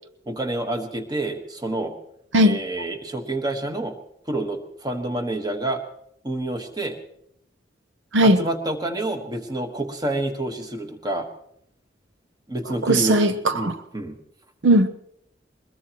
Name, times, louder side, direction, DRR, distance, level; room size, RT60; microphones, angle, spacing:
voice 1, 0.3-1.9 2.4-4.0 4.3-5.8 6.2-7.0 8.2-11.3 12.5-13.2 13.5-14.2, right 2 dB, 20° right, 1.5 m, -28 dB
voice 2, 12.8-13.7 14.6-14.9, right 1 dB, 75° right, 0.8 m, -17 dB
21.5 x 21.5 x 3.1 m
head